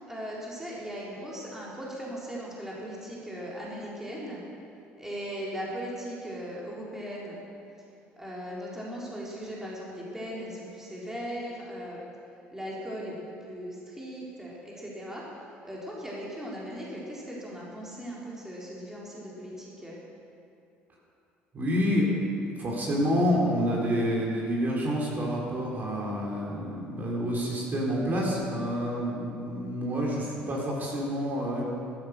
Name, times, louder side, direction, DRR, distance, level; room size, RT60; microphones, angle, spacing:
voice 1, 0.1-4.4 5.0-7.4 8.2-12.0 12.5-15.2 15.6-20.0, equal, 10° right, -5 dB, 3.9 m, -38 dB
voice 2, 21.5-22.1 22.6-31.7, equal, 40° right, -3 dB, 4.5 m, -28 dB
13.0 x 13.0 x 6.7 m, 2.6 s
supercardioid pair, 80°, 5 cm